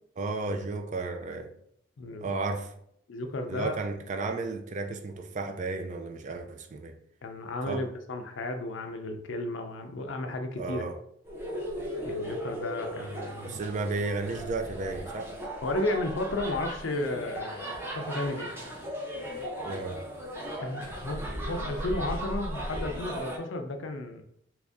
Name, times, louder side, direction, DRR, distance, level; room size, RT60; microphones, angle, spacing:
voice 1, 0.2-1.5 2.2-2.7 3.5-7.0 7.7-7.8 10.6-11.0 13.4-15.3 19.6-20.0, right 3 dB, 40° right, 0.4 m, -33 dB
voice 2, 2.0-2.3 3.1-3.8 7.2-10.8 12.0-13.6 15.6-18.5 20.6-24.2, left 2 dB, 70° left, 0.5 m, -33 dB
sound 1, 11.2-23.4, equal, 10° right, 0.7 m, -37 dB
3.0 x 2.6 x 3.5 m
head